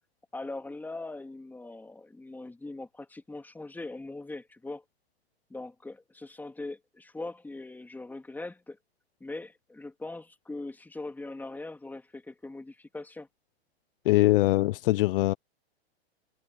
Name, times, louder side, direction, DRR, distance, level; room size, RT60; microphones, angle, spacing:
voice 1, 0.3-4.8 5.5-8.8 9.2-13.3, left 2 dB, 5° left, 2.5 m, -41 dB
voice 2, 14.0-15.3, left 18 dB, 55° left, 1.0 m, -22 dB
hypercardioid pair, 130°, 32 cm